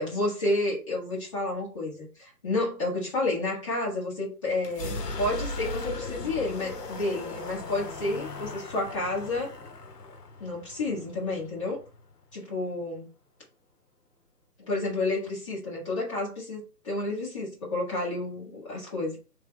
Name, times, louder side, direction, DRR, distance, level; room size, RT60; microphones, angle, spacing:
voice 1, 0.0-9.5 10.4-11.8 12.3-13.1 14.7-19.2, left 2 dB, 20° left, -6 dB, 1.3 m, -30 dB
sound 1, 4.6-12.3, left 3 dB, 70° left, 0.8 m, -38 dB
3.3 x 3.3 x 3.2 m, 0.34 s
figure-of-eight pair, 150°, 50 cm